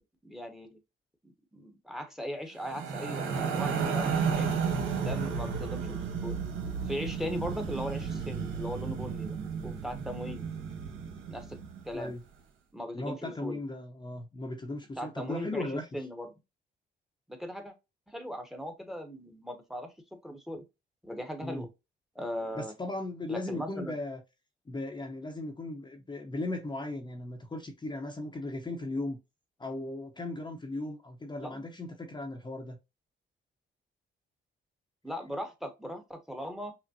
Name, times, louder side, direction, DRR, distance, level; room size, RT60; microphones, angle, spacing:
voice 1, 0.2-0.8 1.5-4.6 5.0-6.4 6.9-9.4 9.6-10.5 11.3-11.6 11.9-12.1 12.7-13.6 15.0-16.3 17.3-17.7 18.1-19.9 20.2-20.6 21.0-21.7 22.1-22.7 23.3-24.0 31.4-31.6 35.0-36.7, equal, ahead, 1.0 m, -38 dB
sound 1, 2.6-11.9, right 6 dB, 80° right, 1.2 m, -33 dB
voice 2, 12.9-15.9 21.4-21.6 22.6-24.2 24.7-29.2 29.6-32.8, left 2 dB, 20° left, 0.8 m, -37 dB
5.9 x 2.1 x 2.7 m
cardioid pair, 90°, 20 cm